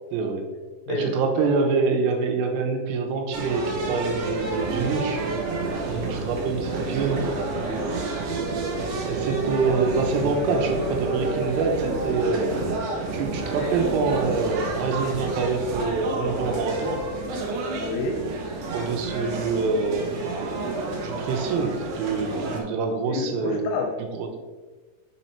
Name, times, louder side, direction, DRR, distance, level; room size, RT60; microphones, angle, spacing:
voice 1, 0.1-0.5 0.9-5.2 5.9-7.2 9.1-12.5 13.1-17.0 18.7-20.4 20.8-23.6 24.0-24.3, right 4 dB, 90° right, 3 dB, 2.9 m, -26 dB
voice 2, 0.9-1.3 7.7-8.0 17.7-18.2 23.1-23.9, left 2 dB, 80° left, 2 dB, 2.5 m, -29 dB
sound 1, 3.3-22.6, right 3 dB, 70° right, 2.0 m, -29 dB
5.8 x 4.4 x 4.1 m, 1.3 s
omnidirectional pair, 4.7 m